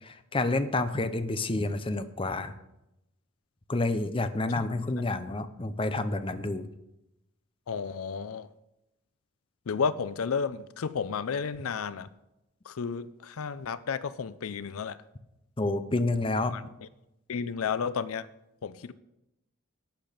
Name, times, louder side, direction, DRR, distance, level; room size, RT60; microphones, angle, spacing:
voice 1, 0.0-2.5 3.7-6.7 15.6-16.5, left 2 dB, 25° left, 10 dB, 0.7 m, -29 dB
voice 2, 7.7-8.5 9.7-12.1 12.6-15.0 16.5-16.6 17.3-18.3 18.6-18.9, left 6 dB, 85° left, 16 dB, 0.5 m, -32 dB
11.5 x 8.8 x 5.1 m, 0.88 s
head